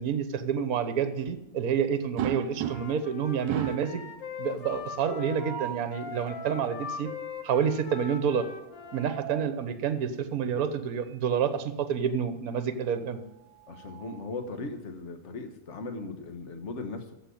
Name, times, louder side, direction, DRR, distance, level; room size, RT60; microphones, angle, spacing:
voice 1, 0.0-4.0 4.4-7.1 7.4-8.5 8.9-13.2, right 7 dB, 55° right, 11 dB, 1.4 m, -28 dB
sound 1, 2.2-3.1 3.5-4.0 5.2-5.9 8.6-9.6 11.1-11.2 11.6-11.7 13.2-14.5, right 12 dB, 80° right, 1.2 m, -36 dB
Wind instrument woodwind instrument, 2.6-9.2, left 5 dB, 85° left, 1.8 m, -40 dB
voice 2, 13.7-17.1, left 3 dB, 45° left, 7 dB, 1.5 m, -38 dB
14.5 x 5.4 x 9.2 m, 0.91 s
omnidirectional pair, 2.0 m